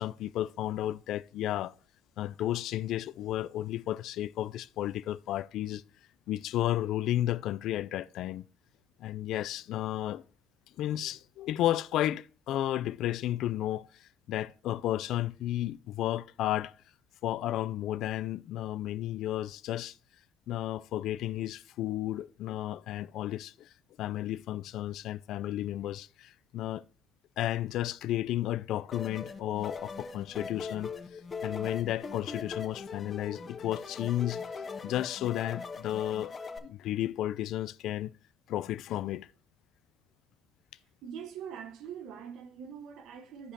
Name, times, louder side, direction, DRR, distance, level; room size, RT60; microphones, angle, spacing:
voice 1, 0.0-1.7 2.2-5.8 6.3-8.5 9.0-10.2 10.8-16.7 17.2-20.0 20.5-23.7 24.0-26.8 27.4-34.4 34.8-36.3 36.6-38.1 38.5-39.3, left 13 dB, 65° left, 0.3 m, -33 dB
sound 1, 28.9-36.6, left 4 dB, 30° left, 1.2 m, -41 dB
voice 2, 41.0-43.5, right 8 dB, 65° right, 1.0 m, -43 dB
13.5 x 5.1 x 2.7 m
cardioid pair, 125°, 0 cm